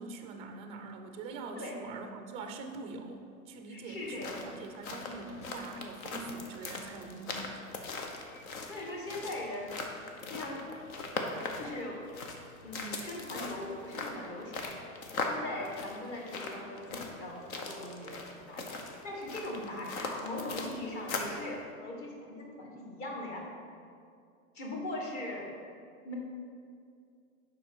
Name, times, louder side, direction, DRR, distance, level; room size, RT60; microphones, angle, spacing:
voice 1, 0.0-7.6 19.5-19.7, right 3 dB, 15° right, 5 dB, 0.3 m, -43 dB
voice 2, 3.7-4.4 8.6-9.8 10.3-10.6 11.6-12.0 12.6-14.9 15.2-23.5 24.5-25.5 26.0-26.1, left 1 dB, 30° left, -1 dB, 1.6 m, -40 dB
sound 1, 4.0-21.4, left 3 dB, 70° left, 1.2 m, -40 dB
6.9 x 5.5 x 5.3 m, 2.3 s
hypercardioid pair, 125°, 43 cm